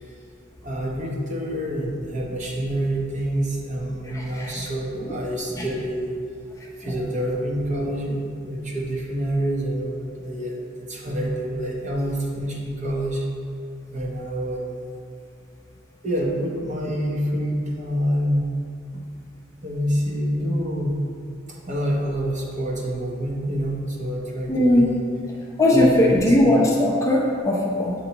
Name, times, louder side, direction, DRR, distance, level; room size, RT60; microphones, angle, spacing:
voice 1, 0.6-6.1 6.8-13.2 13.9-14.8 16.0-18.5 18.9-19.0 19.6-21.0 21.5-25.0 25.7-26.3, equal, 40° right, -2 dB, 0.9 m, -27 dB
voice 2, 4.1-4.5 5.1-5.2 5.6-5.7 24.5-24.9 25.6-27.9, left 1 dB, 15° left, -3 dB, 0.6 m, -19 dB
8.3 x 4.4 x 3.0 m, 2.4 s
head